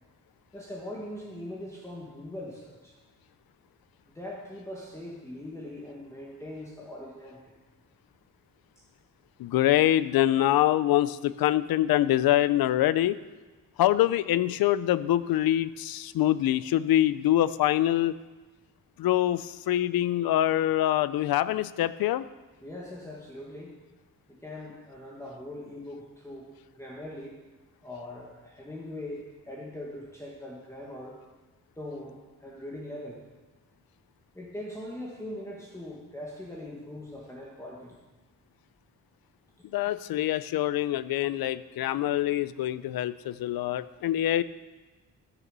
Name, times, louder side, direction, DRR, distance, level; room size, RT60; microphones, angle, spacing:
voice 1, 0.5-2.9 4.1-7.6 8.8-8.9 22.6-23.7 24.3-27.4 27.8-31.2 31.8-33.2 34.3-37.9, left 1 dB, 10° left, -3 dB, 1.7 m, -41 dB
voice 2, 9.4-13.2 13.8-18.2 19.0-22.2 39.7-44.4, left 13 dB, 90° left, 16 dB, 0.6 m, -25 dB
15.0 x 7.1 x 6.7 m, 1.2 s
cardioid pair, 125°, 35 cm